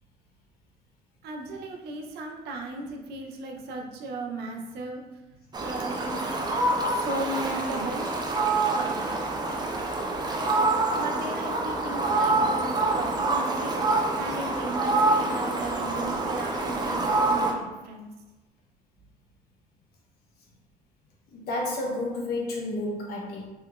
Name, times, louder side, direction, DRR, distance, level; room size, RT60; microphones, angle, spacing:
voice 1, 1.2-5.0 5.6-6.2 6.9-8.1 8.7-9.2 11.0-13.8 14.2-18.1, right 2 dB, 75° right, 1 dB, 0.6 m, -36 dB
Fowl, 5.5-17.5, right 2 dB, 25° right, 0.4 m, -26 dB
voice 2, 21.3-23.5, left 2 dB, 65° left, -1 dB, 0.8 m, -31 dB
3.3 x 2.8 x 2.3 m, 1.1 s
cardioid pair, 110°, 17 cm